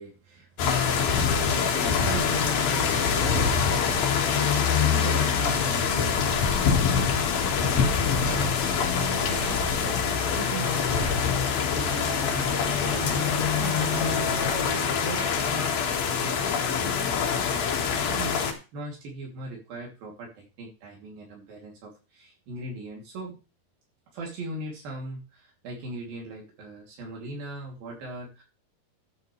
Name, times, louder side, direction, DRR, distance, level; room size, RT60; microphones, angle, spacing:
voice 1, 0.0-14.4 14.6-23.4 24.1-28.4, right 1 dB, 80° right, -1 dB, 4.7 m, -39 dB
sound 1, 0.6-18.5, left 6 dB, 80° left, 3.6 m, -25 dB
sound 2, 6.1-14.7, left 3 dB, 35° left, 1.9 m, -37 dB
13.0 x 9.7 x 3.3 m, 0.31 s
omnidirectional pair, 4.1 m